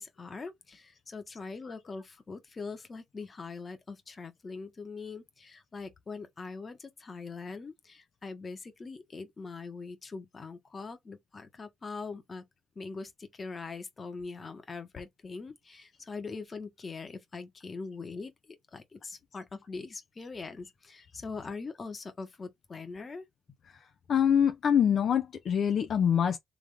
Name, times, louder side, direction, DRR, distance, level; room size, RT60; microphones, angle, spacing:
voice 1, 0.0-12.4 12.7-18.3 18.7-23.3, left 4 dB, 35° left, 1.3 m, -42 dB
voice 2, 24.1-26.4, left 8 dB, 60° left, 0.7 m, -25 dB
3.6 x 3.3 x 3.5 m
cardioid pair, 90°, 0 cm